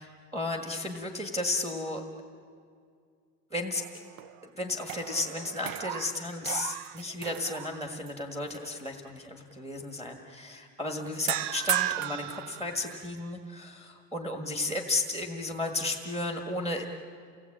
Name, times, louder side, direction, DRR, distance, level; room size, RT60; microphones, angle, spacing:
voice 1, 0.0-2.0 3.5-3.8 4.4-16.8, left 2 dB, 10° right, 2 dB, 1.5 m, -34 dB
sound 1, 3.7-4.4 4.8-8.1 8.5-8.8 11.3-13.2, right 13 dB, 85° right, 0.6 m, -35 dB
29.0 x 18.5 x 8.6 m, 2.2 s
cardioid pair, 165°, 34 cm